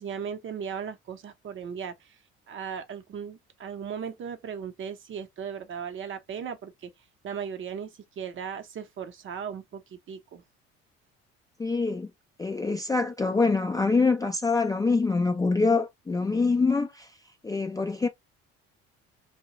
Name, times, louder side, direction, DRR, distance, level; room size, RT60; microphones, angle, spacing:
voice 1, 0.0-2.2 2.5-6.9 7.2-10.4, right 7 dB, 45° right, 0.6 m, -37 dB
voice 2, 11.6-12.1 12.4-17.1 17.4-18.1, left 4 dB, 15° left, 0.3 m, -25 dB
2.2 x 2.0 x 2.8 m
hypercardioid pair, 65°, 30 cm